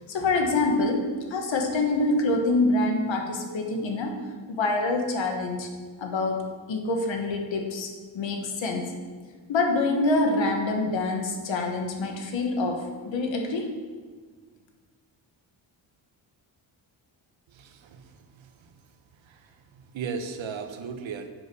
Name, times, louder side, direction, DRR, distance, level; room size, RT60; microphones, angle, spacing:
voice 1, 0.1-4.2 4.5-5.7 6.0-8.9 9.5-13.7, left 2 dB, 70° left, 3 dB, 1.5 m, -26 dB
voice 2, 17.5-18.7 19.2-21.3, right 5 dB, 75° right, 7 dB, 1.0 m, -37 dB
7.8 x 6.5 x 5.4 m, 1.5 s
cardioid pair, 100°, 47 cm